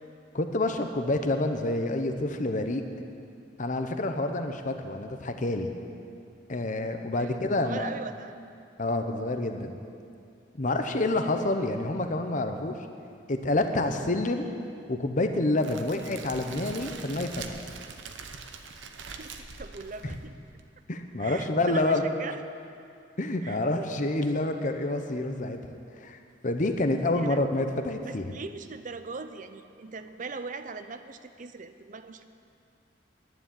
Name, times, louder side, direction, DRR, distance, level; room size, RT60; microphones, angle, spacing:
voice 1, 0.3-2.8 3.6-5.7 6.5-7.9 8.8-9.7 10.5-12.8 13.3-14.5 14.9-17.6 20.0-20.2 20.9-22.0 23.2-25.6 26.0-26.2 26.4-28.3, left 2 dB, 45° left, 6 dB, 0.9 m, -28 dB
voice 2, 7.6-8.3 19.0-20.3 21.2-22.4 23.4-23.6 27.1-27.4 28.1-32.2, right 4 dB, 45° right, 10 dB, 0.6 m, -40 dB
Crackle, 15.6-20.6, right 5 dB, 80° right, 1.0 m, -43 dB
11.0 x 10.0 x 9.2 m, 2.4 s
head